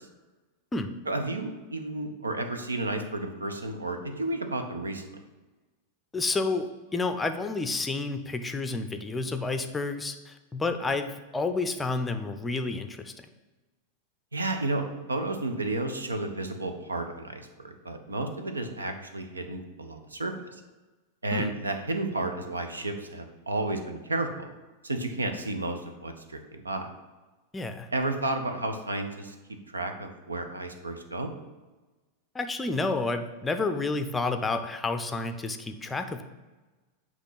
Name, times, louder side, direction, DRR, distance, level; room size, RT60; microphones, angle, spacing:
voice 1, 1.1-5.2 14.3-20.3 21.2-24.5 24.8-26.9 27.9-29.3 29.7-31.3, right 2 dB, 75° right, 6 dB, 0.7 m, -32 dB
voice 2, 6.1-13.1 21.3-21.6 27.5-27.9 32.3-36.2, left 3 dB, 15° left, 8 dB, 0.5 m, -30 dB
8.1 x 3.0 x 5.6 m, 1.2 s
figure-of-eight pair, 90°, 0 cm